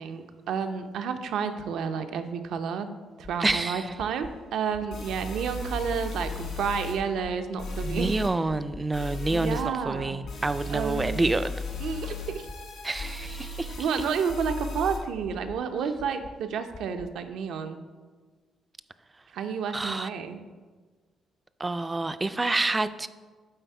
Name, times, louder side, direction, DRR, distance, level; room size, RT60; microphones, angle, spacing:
voice 1, 0.0-8.2 9.3-10.2 10.7-11.2 11.8-12.5 13.8-17.8 19.3-20.4, right 6 dB, 75° right, 8 dB, 0.5 m, -31 dB
sound 1, 3.2-3.5 4.0-4.3 4.7-5.1 5.5-5.8 6.2-6.6 7.0-7.3 7.7-8.1 8.5-8.8 9.2-9.6 10.0-10.3 10.7-11.1 11.5-11.8 12.2-12.5 13.0-13.3 13.7-14.1 14.5-14.8 15.2-15.6 16.0-16.3 16.7-17.1, left 3 dB, 40° left, 0.6 m, -44 dB
voice 2, 3.4-3.9 7.8-11.6 12.8-13.8 19.7-20.1 21.6-23.1, right 2 dB, 20° right, 13 dB, 0.3 m, -28 dB
sound 2, 4.2-4.3 4.9-6.9 7.6-8.3 8.9-9.6 10.3-15.0, left 2 dB, 70° left, 1.9 m, -36 dB
7.8 x 4.1 x 4.6 m, 1.4 s
cardioid pair, 90°, 0 cm